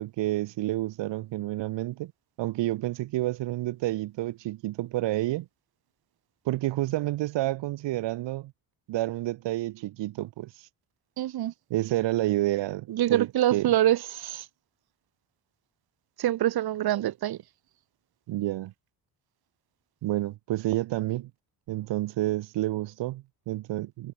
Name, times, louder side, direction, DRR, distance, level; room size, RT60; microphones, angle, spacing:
voice 1, 0.0-2.1 2.4-5.5 6.4-8.5 8.9-10.7 11.7-13.7 18.3-18.7 20.0-21.3 21.7-24.1, right 16 dB, 85° right, 1.0 m, -29 dB
voice 2, 11.2-11.5 12.9-14.4 16.2-17.4, right 13 dB, 60° right, 1.4 m, -25 dB
cardioid pair, 175°, 42 cm